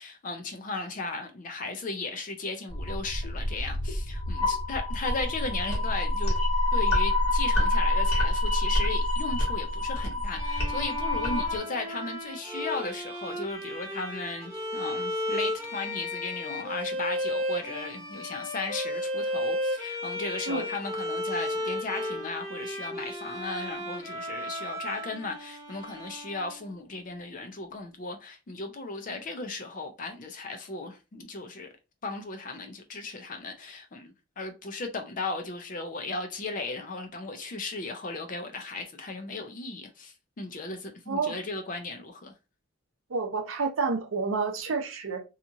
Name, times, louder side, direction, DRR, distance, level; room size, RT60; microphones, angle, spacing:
voice 1, 0.0-6.4 6.7-31.7 32.0-42.3, left 3 dB, 40° left, 0.4 m, -36 dB
sound 1, 2.7-11.6, left 1 dB, 85° left, 1.3 m, -27 dB
Bowed string instrument, 10.3-26.9, left 1 dB, 15° right, 0.8 m, -34 dB
voice 2, 41.1-41.4 43.1-45.2, right 4 dB, 70° right, 0.6 m, -29 dB
2.8 x 2.4 x 2.6 m
head